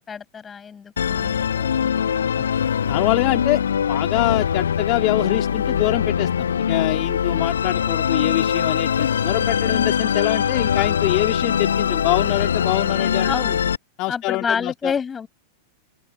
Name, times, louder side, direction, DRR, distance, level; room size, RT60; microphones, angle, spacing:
voice 1, 0.0-2.3 13.2-13.6 14.1-15.3, left 6 dB, 20° left, 6.7 m, -29 dB
Musical instrument, 1.0-13.8, left 8 dB, 70° left, 1.4 m, -22 dB
voice 2, 2.9-3.6 3.9-6.3 6.7-13.6 14.0-14.9, left 22 dB, 40° left, 3.7 m, -24 dB
figure-of-eight pair, 90°, 0 cm